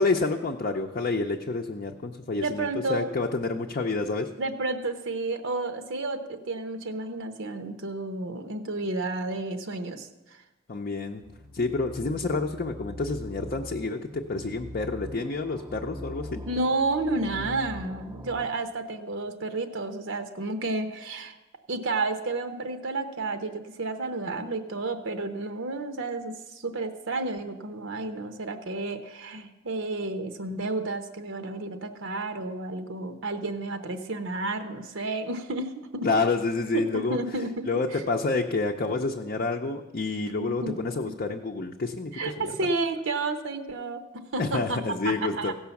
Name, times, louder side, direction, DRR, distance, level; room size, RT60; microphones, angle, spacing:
voice 1, 0.0-4.3 10.7-11.2 11.5-16.4 36.0-37.2 37.7-42.5 44.4-45.5, left 3 dB, 45° left, 1 dB, 0.6 m, -28 dB
voice 2, 2.4-3.1 4.4-10.1 16.5-21.4 21.7-36.1 36.7-37.6 40.4-40.7 42.1-44.8 45.0-45.5, right 2 dB, 75° right, 8 dB, 0.8 m, -31 dB
sound 1, 11.2-18.5, equal, 15° right, 0.5 m, -42 dB
16.0 x 5.5 x 7.0 m, 1.1 s
head